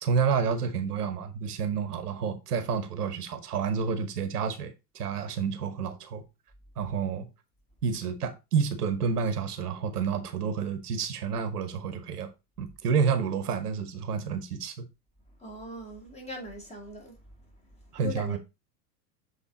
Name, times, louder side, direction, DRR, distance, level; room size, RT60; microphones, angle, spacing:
voice 1, 0.0-6.2 6.8-7.3 7.8-12.3 12.6-14.8 17.9-18.4, right 6 dB, 65° right, 1.2 m, -29 dB
voice 2, 15.4-17.2 17.9-18.4, left 1 dB, 15° left, 2.1 m, -40 dB
7.5 x 3.8 x 3.8 m
figure-of-eight pair, 95°, 50 cm